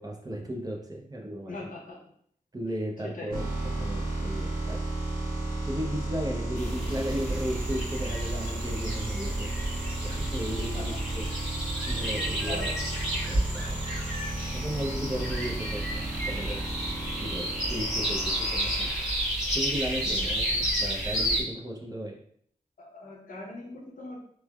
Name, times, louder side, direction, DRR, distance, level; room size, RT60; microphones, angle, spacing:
voice 1, 0.0-1.7 2.5-3.5 3.8-4.8 5.7-9.5 10.0-11.6 11.9-12.7 13.3-13.8 14.5-16.6 17.2-19.2 19.5-22.2, equal, 25° right, -1 dB, 0.5 m, -35 dB
voice 2, 1.5-2.0 3.0-3.4 10.7-10.8 12.5-12.8 20.0-20.1 22.8-24.2, left 2 dB, 70° left, -2 dB, 0.7 m, -40 dB
sound 1, 3.3-19.8, right 2 dB, 80° right, 1.3 m, -34 dB
sound 2, 6.6-21.4, equal, 5° right, 1.0 m, -31 dB
3.1 x 2.1 x 2.3 m, 0.63 s
wide cardioid pair, 90°, 14 cm